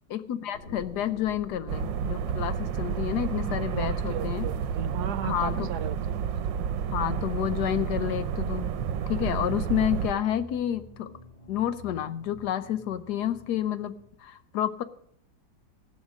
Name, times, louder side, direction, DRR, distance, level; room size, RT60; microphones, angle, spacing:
voice 1, 0.1-4.5 5.2-5.7 6.9-8.7 9.1-11.1 11.5-14.8, left 10 dB, 70° left, 13 dB, 1.2 m, -29 dB
sound 1, 0.5-11.5 12.0-12.1, equal, 35° left, 2.2 m, -51 dB
sound 2, 1.7-10.1, right 7 dB, 90° right, 1.4 m, -30 dB
voice 2, 3.7-6.2, right 10 dB, 65° right, 14 dB, 1.2 m, -36 dB
sound 3, 7.5-14.2, equal, 15° left, 3.0 m, -49 dB
18.0 x 6.5 x 6.2 m, 0.71 s
omnidirectional pair, 2.0 m